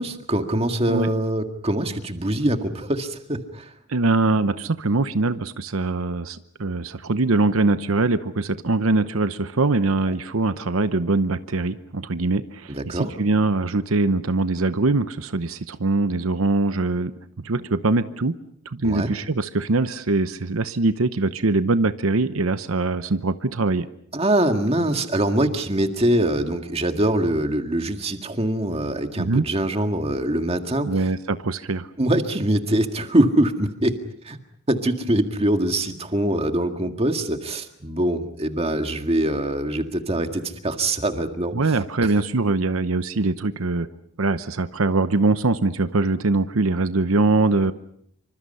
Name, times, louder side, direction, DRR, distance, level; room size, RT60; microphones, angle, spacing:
voice 1, 0.0-3.7 12.7-13.1 18.8-19.1 24.1-30.9 32.0-34.0 34.2-34.4 34.7-42.1, right 1 dB, 30° right, 5 dB, 1.9 m, -23 dB
voice 2, 3.9-18.3 18.6-23.9 29.2-29.4 30.8-31.9 41.5-43.9 44.2-47.7, right 3 dB, 80° right, 11 dB, 0.9 m, -22 dB
27.0 x 25.0 x 5.5 m, 0.69 s
head